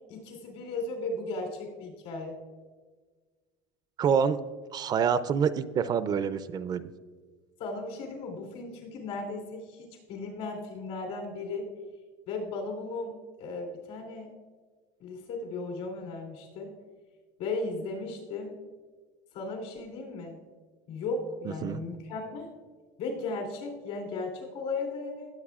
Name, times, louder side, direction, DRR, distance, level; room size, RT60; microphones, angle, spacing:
voice 1, 0.1-2.4 7.6-11.7 12.3-14.3 15.0-16.7 17.4-18.5 19.3-20.4 20.9-22.5 23.0-25.3, left 3 dB, 70° left, 1 dB, 3.4 m, -36 dB
voice 2, 4.0-4.4 4.7-6.8 21.6-21.8, right 7 dB, 35° right, 14 dB, 0.4 m, -26 dB
18.5 x 7.8 x 2.4 m, 1.4 s
supercardioid pair, 125°, 12 cm